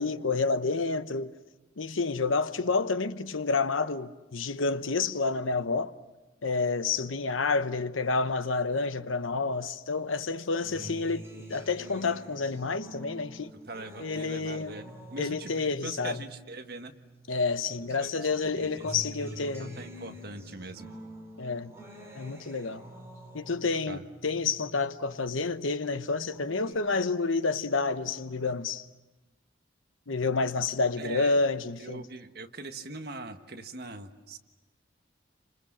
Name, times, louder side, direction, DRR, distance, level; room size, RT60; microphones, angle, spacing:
voice 1, 0.0-1.3 1.8-5.9 6.4-13.5 14.0-14.7 15.2-16.2 17.3-19.8 21.4-21.7 22.2-22.8 23.3-28.8 30.1-32.0, left 4 dB, 85° left, 1.0 m, -29 dB
voice 2, 10.6-11.0 13.6-16.9 18.0-18.9 19.2-20.9 23.9-24.0 31.0-31.4 31.8-34.4, right 2 dB, 50° right, 1.5 m, -42 dB
Acoustic guitar, 10.7-17.4 17.8-25.4 25.8-26.7, right 1 dB, 15° right, 4.8 m, -47 dB
29.0 x 26.0 x 7.3 m
head